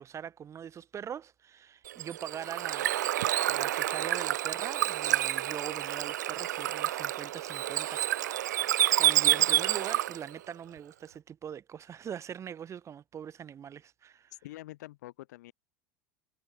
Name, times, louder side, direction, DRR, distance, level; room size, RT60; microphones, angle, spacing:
voice 1, 0.0-2.9 3.5-8.5 9.0-14.3, right 8 dB, 30° right, 1.1 m, -42 dB
Bird / Water, 1.9-10.3, right 13 dB, 80° right, 0.4 m, -28 dB
voice 2, 14.4-15.5, left 17 dB, 70° left, 2.1 m, -46 dB
hypercardioid pair, 85°, 9 cm